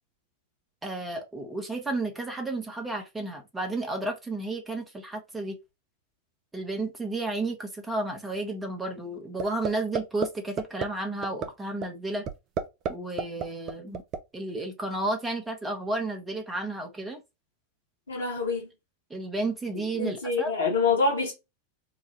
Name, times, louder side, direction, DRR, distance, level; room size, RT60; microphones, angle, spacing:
voice 1, 0.8-5.6 6.5-12.2 12.9-14.0 14.3-17.2 19.1-20.5, right 2 dB, 10° right, 0.9 m, -32 dB
sound 1, 9.4-9.7 9.9-10.3 10.6-10.8 11.2-11.5 11.8-11.9 12.3-12.9 13.2-14.2, right 6 dB, 35° right, 0.5 m, -28 dB
voice 2, 18.1-18.7 20.0-21.3, left 4 dB, 70° left, 1.2 m, -26 dB
3.9 x 2.3 x 2.8 m
figure-of-eight pair, 90°, 0 cm